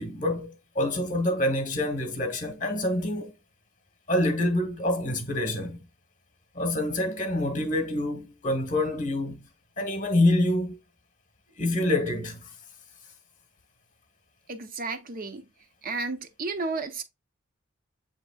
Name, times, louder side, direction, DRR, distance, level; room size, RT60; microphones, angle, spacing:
voice 1, 0.0-3.3 4.1-5.8 6.5-9.5 9.8-10.8 11.6-12.5, left 1 dB, 40° left, 1.0 m, -26 dB
voice 2, 14.5-15.5 15.8-17.0, right 3 dB, 45° right, 0.7 m, -32 dB
7.9 x 2.9 x 2.2 m
head